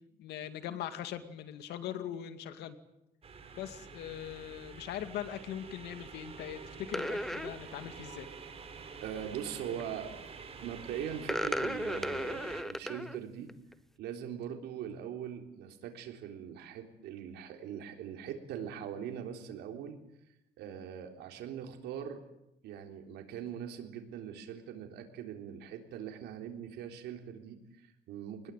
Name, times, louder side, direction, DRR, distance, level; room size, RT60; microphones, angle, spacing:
voice 1, 0.2-2.8 3.5-8.3, left 10 dB, 80° left, 9 dB, 2.3 m, -41 dB
sound 1, 3.2-12.6, right 5 dB, 35° right, 4.7 m, -48 dB
sound 2, 6.9-7.5 9.5-9.8 11.2-13.2 13.5-13.7, equal, ahead, 1.1 m, -35 dB
voice 2, 9.0-10.1 10.6-13.5 14.0-20.0 20.2-22.2 22.6-28.5, right 9 dB, 80° right, 3 dB, 3.7 m, -41 dB
25.5 x 20.5 x 9.2 m, 0.87 s
cardioid pair, 110°, 17 cm